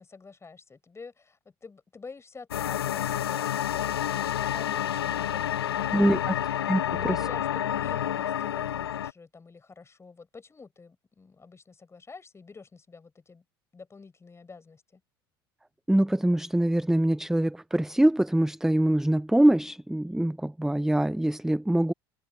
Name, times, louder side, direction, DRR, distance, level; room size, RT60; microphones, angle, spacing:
voice 1, 0.0-6.4 6.8-13.4 13.7-15.0, left 4 dB, 20° left, 6.7 m, -48 dB
sound 1, 2.5-9.1, left 10 dB, 85° left, 0.9 m, -29 dB
voice 2, 5.9-6.3 6.7-6.8 7.0-7.2 15.9-21.9, right 1 dB, 5° right, 0.8 m, -24 dB
hypercardioid pair, 75°, 13 cm